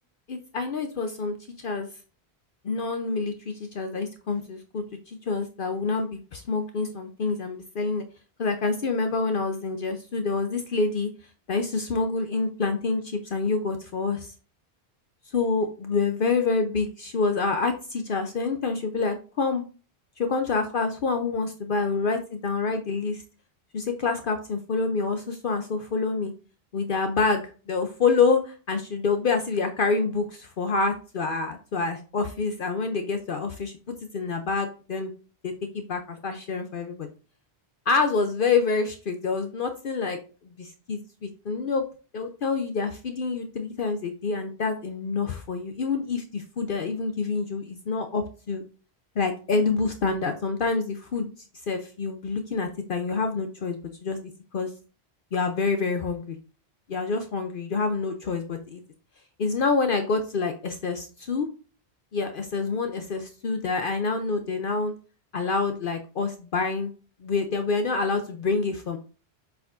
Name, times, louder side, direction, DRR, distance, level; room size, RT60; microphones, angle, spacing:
voice 1, 0.3-1.9 2.6-8.0 8.4-11.1 11.5-14.3 15.3-19.6 20.2-23.2 23.7-26.3 26.7-33.7 34.1-35.1 35.4-37.1 37.9-40.2 40.6-41.8 42.1-48.6 49.2-51.3 51.7-54.2 54.5-54.7 55.3-56.4 56.9-58.8 59.4-61.5 62.1-64.9 65.3-66.9 67.2-69.0, left 4 dB, 60° left, 6 dB, 0.8 m, -27 dB
8.0 x 4.8 x 2.5 m, 0.36 s
omnidirectional pair, 1.1 m